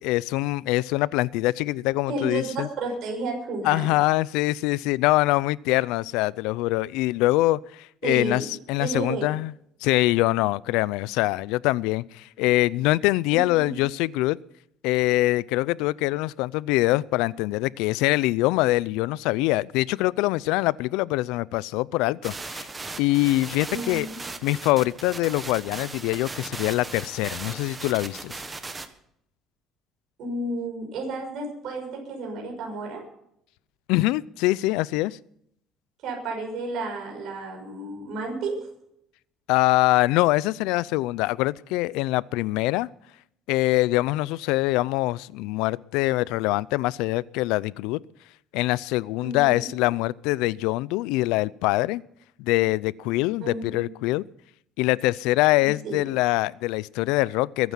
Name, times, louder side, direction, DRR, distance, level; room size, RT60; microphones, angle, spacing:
voice 1, 0.0-2.7 3.6-9.5 9.8-14.4 14.8-22.7 23.0-24.1 24.4-28.4 33.9-35.2 39.5-42.9 43.5-48.0 48.5-52.0 52.4-54.2 54.8-57.7, left 19 dB, 90° left, 21 dB, 0.5 m, -24 dB
voice 2, 2.1-3.9 8.0-8.4 8.8-9.3 13.3-13.4 23.7-24.2 30.2-33.0 36.0-38.7 49.2-49.7 53.4-53.9 55.6-56.0, right 3 dB, 60° right, 0 dB, 6.5 m, -32 dB
sound 1, 22.2-28.9, right 3 dB, 15° right, 1.3 m, -38 dB
22.0 x 9.4 x 5.7 m, 0.73 s
cardioid pair, 140°, 0 cm